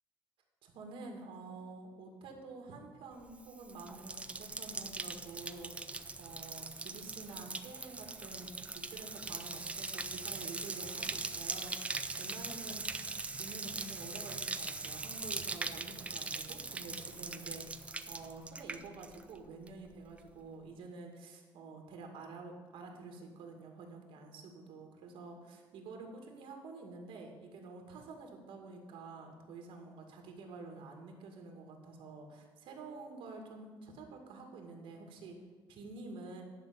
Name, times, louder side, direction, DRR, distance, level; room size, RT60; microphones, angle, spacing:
voice 1, 0.6-5.7 6.2-17.6 18.1-35.4 35.7-36.4, right 3 dB, 75° right, 3 dB, 2.2 m, -49 dB
Bathtub (filling or washing), 3.3-19.4 19.7-20.2, right 3 dB, 15° right, 0.4 m, -41 dB
10.5 x 5.5 x 8.6 m, 1.4 s
cardioid pair, 155°, 9 cm